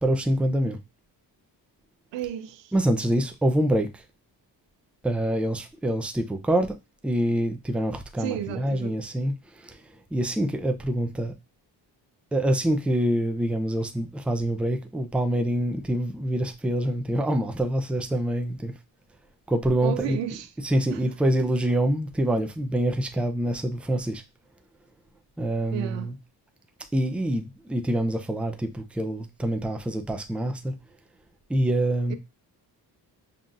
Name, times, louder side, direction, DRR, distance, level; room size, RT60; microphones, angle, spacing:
voice 1, 0.0-0.8 2.7-4.0 5.0-6.7 7.0-9.8 10.1-11.3 12.3-18.7 19.5-20.2 20.6-24.2 25.4-26.1 26.9-30.7 31.5-32.1, right 1 dB, 5° right, 0.4 m, -25 dB
voice 2, 2.1-2.7 8.2-9.0 19.8-20.5 20.9-21.0 25.7-26.1 32.1-32.2, right 11 dB, 90° right, 0.6 m, -32 dB
5.5 x 2.4 x 2.5 m
cardioid pair, 95°, 42 cm